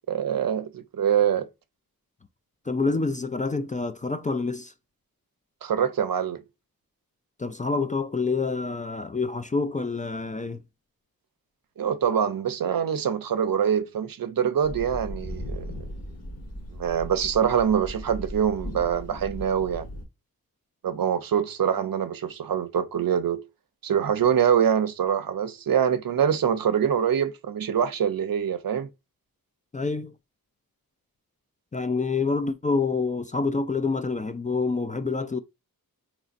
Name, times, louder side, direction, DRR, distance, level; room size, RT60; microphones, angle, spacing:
voice 1, 0.1-1.5 5.6-6.4 11.8-15.7 16.7-19.9 20.8-23.4 23.8-28.9, right 8 dB, 70° right, 0.6 m, -24 dB
voice 2, 2.7-4.7 7.4-10.6 29.7-30.1 31.7-35.4, left 4 dB, 25° left, 0.3 m, -27 dB
sound 1, 14.6-20.0, equal, 45° left, 1.1 m, -37 dB
4.0 x 3.0 x 2.5 m
wide cardioid pair, 75°, 36 cm